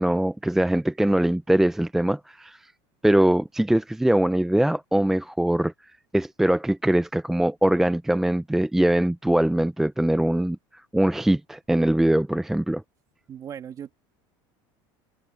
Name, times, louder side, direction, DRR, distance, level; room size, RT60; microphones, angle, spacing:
voice 1, 0.0-2.7 3.0-5.7 6.1-10.6 10.9-12.8, right 1 dB, 5° right, 0.5 m, -22 dB
voice 2, 13.3-14.0, right 9 dB, 35° right, 2.8 m, -38 dB
supercardioid pair, 135°, 11 cm